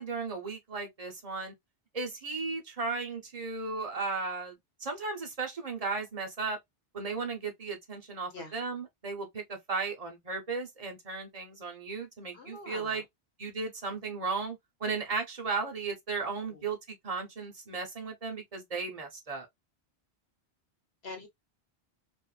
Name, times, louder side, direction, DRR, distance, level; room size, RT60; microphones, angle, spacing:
voice 1, 0.0-1.5 1.9-4.6 4.8-6.6 6.9-13.0 13.4-19.5, right 4 dB, 40° right, 0.8 m, -35 dB
voice 2, 12.3-13.0 16.5-16.6 21.0-21.3, left 3 dB, 70° left, 1.1 m, -44 dB
2.5 x 2.5 x 2.3 m
omnidirectional pair, 1.1 m